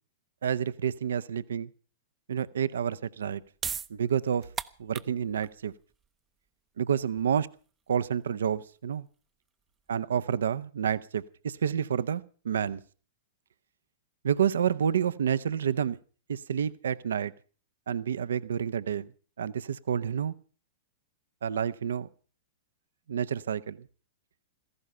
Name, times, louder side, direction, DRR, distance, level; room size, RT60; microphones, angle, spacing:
voice 1, 0.4-1.7 2.3-3.4 3.9-4.5 4.8-5.7 6.8-7.5 7.9-9.1 9.9-12.8 14.2-16.0 16.3-17.3 17.9-19.1 19.4-20.3 21.4-22.1 23.1-23.9, right 8 dB, 70° right, 0.7 m, -29 dB
sound 1, 3.2-9.9, right 7 dB, 20° right, 0.7 m, -41 dB
16.5 x 14.5 x 5.5 m
figure-of-eight pair, 105°, 0 cm